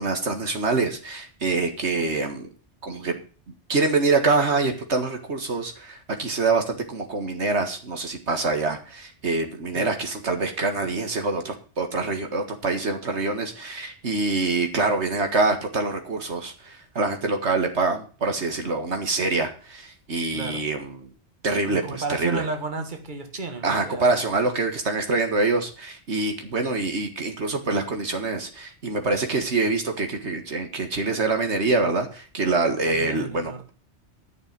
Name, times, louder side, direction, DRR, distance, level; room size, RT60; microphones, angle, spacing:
voice 1, 0.0-2.5 2.8-3.2 3.7-21.0 21.4-22.5 23.6-33.7, right 3 dB, 80° right, 5 dB, 2.1 m, -25 dB
voice 2, 21.7-24.2 32.9-33.7, right 3 dB, 45° right, 6 dB, 2.0 m, -33 dB
11.5 x 6.7 x 7.6 m, 0.39 s
omnidirectional pair, 1.1 m